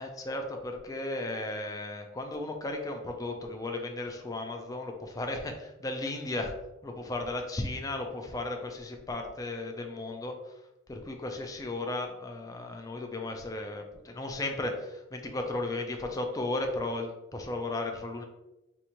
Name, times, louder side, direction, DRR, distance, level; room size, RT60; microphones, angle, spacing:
voice 1, 0.0-6.5 6.8-10.4 10.9-18.2, left 2 dB, 20° left, 3 dB, 0.4 m, -35 dB
4.6 x 2.6 x 2.9 m, 0.96 s
head